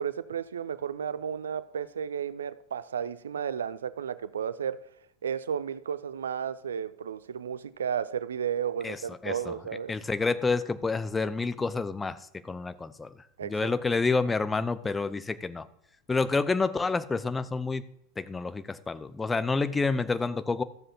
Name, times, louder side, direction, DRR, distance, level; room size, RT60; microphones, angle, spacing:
voice 1, 0.0-4.8 5.2-9.9 13.4-13.7, right 8 dB, 75° right, 0.4 m, -33 dB
voice 2, 8.8-9.5 9.9-13.1 13.4-15.7 16.1-17.8 18.2-20.6, left 4 dB, 15° left, 0.6 m, -29 dB
13.5 x 7.5 x 2.8 m
figure-of-eight pair, 85°, 0 cm